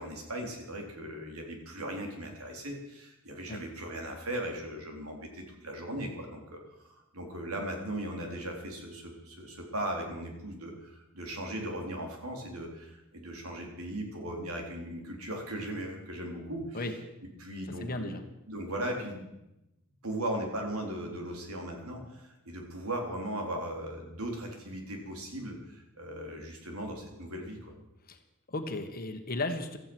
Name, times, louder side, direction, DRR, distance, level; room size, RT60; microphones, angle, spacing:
voice 1, 0.0-16.9 17.4-18.2 18.5-19.3 20.0-27.7, right 1 dB, 85° right, 2 dB, 3.8 m, -38 dB
voice 2, 17.7-18.2 28.1-28.2 28.5-29.8, left 2 dB, 45° left, 6 dB, 1.6 m, -35 dB
16.0 x 14.0 x 6.3 m, 0.91 s
head